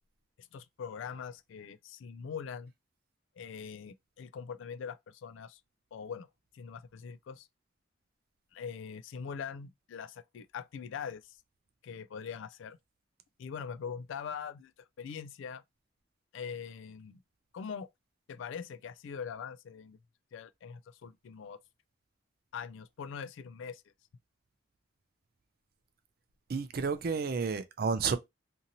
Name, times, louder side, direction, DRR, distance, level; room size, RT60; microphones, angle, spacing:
voice 1, 0.4-2.7 3.4-5.6 5.9-6.3 6.5-7.5 8.5-11.4 11.8-12.8 13.4-14.7 15.0-15.6 16.3-17.2 17.5-17.9 18.3-20.0 20.3-21.6 22.5-23.8, left 6 dB, 75° left, 0.3 m, -42 dB
voice 2, 26.5-28.2, right 5 dB, 50° right, 0.4 m, -31 dB
2.8 x 2.6 x 2.6 m
head